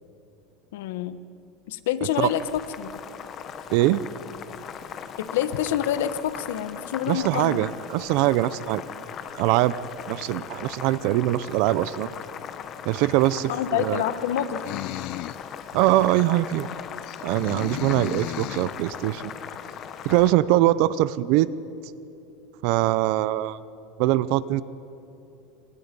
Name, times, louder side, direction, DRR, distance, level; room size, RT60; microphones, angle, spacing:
voice 1, 0.7-1.2 1.7-2.9 5.2-7.6 13.5-15.0 17.8-18.1, left 10 dB, 75° left, 12 dB, 1.3 m, -27 dB
Boiling, 2.1-20.3, left 8 dB, 25° left, 1.2 m, -38 dB
voice 2, 3.7-4.0 7.1-8.8 9.4-9.7 10.1-12.1 12.8-14.0 15.7-16.7 17.2-19.3 20.0-21.5 22.6-23.6 24.0-24.6, right 15 dB, 50° right, 17 dB, 0.6 m, -22 dB
sound 1, 14.6-15.4 16.0-16.1 17.0-18.8, left 17 dB, 45° left, 0.4 m, -35 dB
27.5 x 25.5 x 5.4 m, 2.9 s
supercardioid pair, 165°, 0 cm